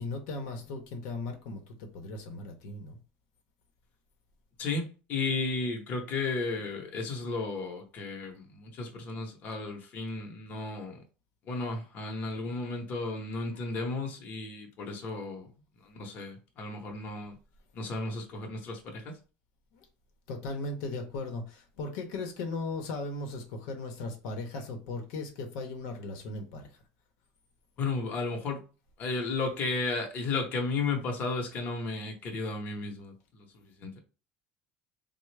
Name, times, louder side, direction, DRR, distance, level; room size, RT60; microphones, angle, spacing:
voice 1, 0.0-3.0 19.7-19.8 20.3-26.7, left 3 dB, 85° left, 0.7 m, -37 dB
voice 2, 4.6-11.0 11.5-15.5 15.8-17.4 17.7-19.1 27.8-28.6 29.0-34.0, left 3 dB, 45° left, 0.8 m, -34 dB
3.5 x 2.0 x 3.2 m
cardioid pair, 150°, 4 cm